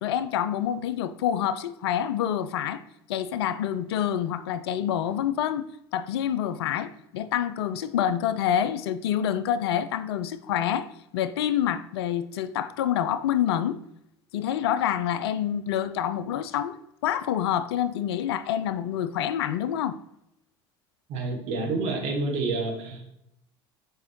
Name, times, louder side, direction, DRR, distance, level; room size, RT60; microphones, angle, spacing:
voice 1, 0.0-2.8 3.1-5.7 5.9-13.8 14.3-16.7 17.0-20.0, left 10 dB, 75° left, 0.4 m, -27 dB
voice 2, 21.1-23.1, right 3 dB, 60° right, 1.5 m, -28 dB
6.7 x 5.1 x 3.0 m
hypercardioid pair, 70°, 14 cm